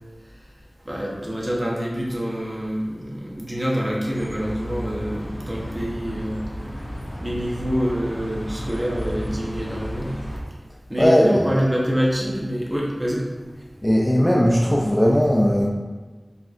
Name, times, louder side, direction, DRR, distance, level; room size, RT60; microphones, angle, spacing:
voice 1, 0.8-6.4 7.2-10.1 10.9-13.2, equal, 25° right, -4 dB, 1.0 m, -26 dB
Bus, 4.1-10.4, equal, 65° left, 1.3 m, -33 dB
voice 2, 11.0-11.4 13.8-15.7, equal, 15° left, -2 dB, 0.4 m, -18 dB
4.2 x 3.6 x 2.5 m, 1.4 s
wide cardioid pair, 45°, 0 cm